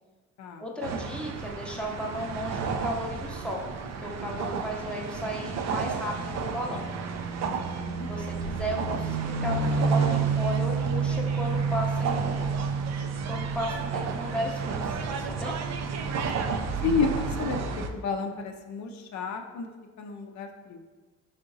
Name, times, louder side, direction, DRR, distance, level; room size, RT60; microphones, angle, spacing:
voice 1, 0.6-3.7 4.0-6.9 8.1-12.5 13.2-15.6, equal, 5° left, -1 dB, 0.6 m, -35 dB
sound 1, 0.8-17.9, right 5 dB, 60° right, 0.4 m, -30 dB
voice 2, 7.4-8.1 16.8-19.7 20.0-20.8, left 5 dB, 70° left, 4 dB, 0.5 m, -31 dB
4.9 x 3.7 x 2.6 m, 1.3 s
cardioid pair, 90°, 30 cm